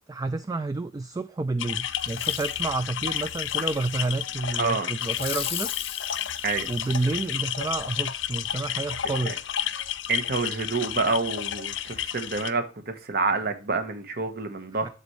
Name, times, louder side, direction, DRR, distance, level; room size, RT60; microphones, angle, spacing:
voice 1, 0.1-5.7 6.7-9.4 14.7-14.9, right 3 dB, 20° right, 0.3 m, -30 dB
sound 1, 1.6-12.5, left 10 dB, 75° left, 0.6 m, -31 dB
Fireworks, 2.0-2.6 3.1-4.2 5.0-7.4 7.9-8.0, left 10 dB, 35° left, 0.6 m, -38 dB
voice 2, 4.6-4.9 6.4-6.7 9.2-9.3 10.1-14.9, right 4 dB, 55° right, 1.1 m, -28 dB
12.0 x 4.1 x 3.1 m
head